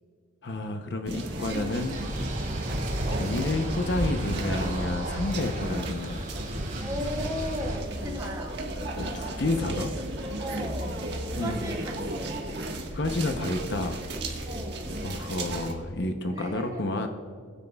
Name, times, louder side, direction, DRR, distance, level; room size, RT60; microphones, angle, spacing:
voice 1, 0.4-2.1 3.2-6.3 9.0-9.9 11.4-11.6 12.9-14.0 15.0-17.1, left 2 dB, 55° left, 5 dB, 0.8 m, -30 dB
sound 1, 1.1-15.7, right 1 dB, 55° right, 1.5 m, -35 dB
sound 2, 1.5-7.8, right 1 dB, 40° right, 2.8 m, -33 dB
voice 2, 6.8-8.6 10.4-11.0 11.3-12.5 14.5-14.9 16.3-16.9, equal, 20° right, -1 dB, 2.5 m, -36 dB
21.0 x 9.5 x 2.3 m, 2.1 s
head